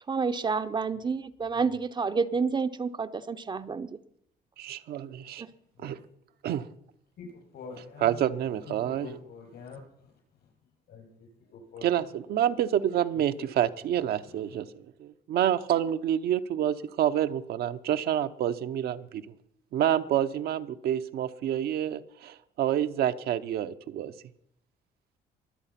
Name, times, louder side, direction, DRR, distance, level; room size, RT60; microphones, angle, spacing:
voice 1, 0.1-4.0 5.4-5.5, right 5 dB, 30° right, 10 dB, 0.6 m, -29 dB
voice 2, 4.6-5.4 5.8-6.0 6.4-6.7 8.0-9.1 11.8-14.7 15.3-19.3 19.7-24.1, right 10 dB, 70° right, 10 dB, 0.8 m, -28 dB
voice 3, 7.2-9.8 10.9-11.1 11.5-12.1 13.4-13.5 13.9-14.4, left 5 dB, 75° left, 1 dB, 7.2 m, -45 dB
23.0 x 8.1 x 5.8 m, 0.73 s
cardioid pair, 110°, 17 cm